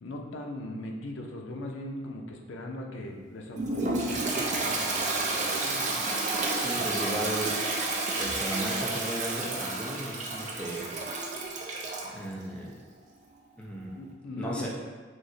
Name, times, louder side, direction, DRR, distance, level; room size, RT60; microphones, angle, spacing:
voice 1, 0.0-5.9 6.8-7.2 13.9-14.7, left 1 dB, 75° left, 1 dB, 0.5 m, -40 dB
Toilet flush, 3.6-12.1, right 2 dB, 40° right, 0.5 m, -30 dB
voice 2, 6.6-7.6 8.1-10.9 12.1-12.7 13.6-14.0 14.3-14.7, right 1 dB, 5° left, -4 dB, 0.6 m, -35 dB
6.1 x 2.1 x 2.7 m, 1.5 s
head